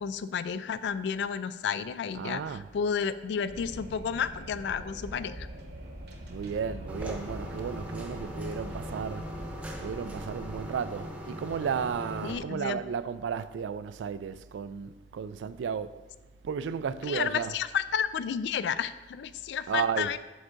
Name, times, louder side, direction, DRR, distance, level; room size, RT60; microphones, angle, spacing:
voice 1, 0.0-5.5 12.2-12.8 17.1-20.2, left 7 dB, 65° left, 0.3 m, -31 dB
voice 2, 2.1-2.7 6.3-9.5 9.8-16.0 16.4-17.6 19.7-20.2, right 6 dB, 85° right, 0.3 m, -34 dB
Wind, 3.5-10.7, right 1 dB, 60° right, 1.0 m, -43 dB
sound 1, 6.9-12.4, equal, 5° right, 0.7 m, -40 dB
7.8 x 6.1 x 2.6 m
head